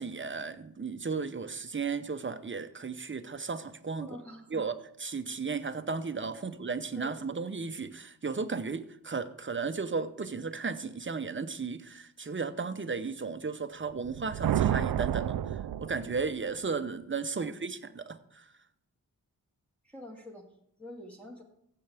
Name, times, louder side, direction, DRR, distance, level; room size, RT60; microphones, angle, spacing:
voice 1, 0.0-4.1 4.5-4.7 5.0-18.5, right 4 dB, 30° right, 10 dB, 0.8 m, -35 dB
voice 2, 4.0-4.7 6.3-6.5 7.0-7.3 17.4-17.6 19.8-21.4, left 1 dB, 5° left, -2 dB, 1.9 m, -47 dB
sound 1, 14.0-16.5, right 10 dB, 70° right, 0.5 m, -30 dB
15.5 x 7.8 x 3.5 m, 0.76 s
wide cardioid pair, 70°, 36 cm